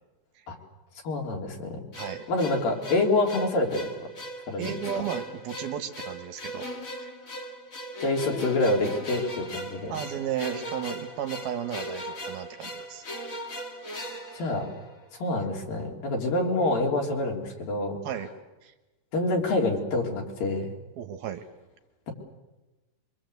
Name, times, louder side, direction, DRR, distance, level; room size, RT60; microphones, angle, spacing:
voice 1, 1.0-1.8 2.3-4.1 4.5-4.7 8.0-9.9 14.3-14.7 15.2-18.0 19.1-20.7, left 2 dB, 60° left, 1 dB, 5.1 m, -26 dB
sound 1, 1.9-15.2, equal, 35° left, 1.3 m, -39 dB
voice 2, 4.6-6.7 7.0-7.1 9.9-13.0 18.0-18.3 18.6-18.7 21.0-21.4, right 9 dB, 70° right, 7 dB, 3.1 m, -34 dB
26.0 x 24.5 x 8.1 m, 1.1 s
omnidirectional pair, 4.8 m